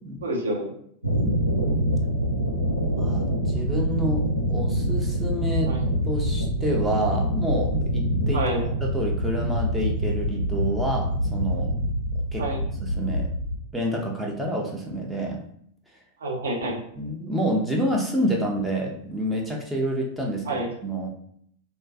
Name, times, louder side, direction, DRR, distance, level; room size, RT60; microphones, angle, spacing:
voice 1, 0.2-0.7 5.7-5.9 8.3-8.7 12.4-12.6 16.2-16.8 20.5-20.7, right 1 dB, 65° right, 0 dB, 0.6 m, -28 dB
sound 1, 1.0-13.5, equal, 90° left, 0.4 m, -25 dB
voice 2, 3.0-4.2 4.5-5.7 6.0-8.4 8.8-11.7 12.3-12.5 12.8-13.3 13.7-15.4 17.0-21.1, right 1 dB, 5° right, -1 dB, 0.4 m, -28 dB
2.3 x 2.2 x 2.4 m, 0.66 s
figure-of-eight pair, 90°, 0 cm